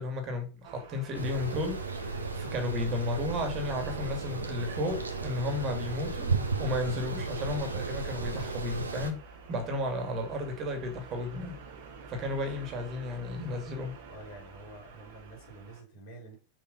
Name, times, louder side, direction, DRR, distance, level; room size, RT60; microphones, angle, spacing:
voice 1, 0.0-11.6 12.1-14.0, left 1 dB, 35° right, 2.6 m, -34 dB
sound 1, 0.6-15.8, right 5 dB, 50° right, 1.8 m, -49 dB
sound 2, 1.1-9.1, right 4 dB, 75° right, 1.4 m, -34 dB
voice 2, 14.1-16.4, right 2 dB, 50° left, 4.1 m, -48 dB
6.5 x 5.4 x 5.3 m
figure-of-eight pair, 90°, 0 cm